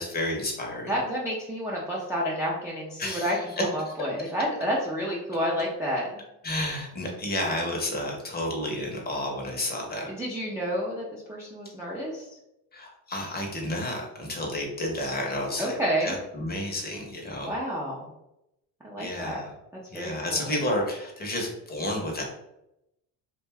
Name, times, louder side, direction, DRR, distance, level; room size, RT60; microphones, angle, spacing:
voice 1, 0.0-0.9 3.0-3.9 6.4-10.1 12.7-15.7 16.0-17.5 19.0-19.5 19.9-22.2, left 1 dB, 25° left, 0 dB, 0.7 m, -31 dB
voice 2, 0.9-6.1 10.1-12.3 15.6-16.1 17.4-18.0 18.8-19.4 19.9-20.5, equal, 10° right, -6 dB, 0.4 m, -30 dB
2.5 x 2.2 x 3.3 m, 0.86 s
cardioid pair, 125°, 38 cm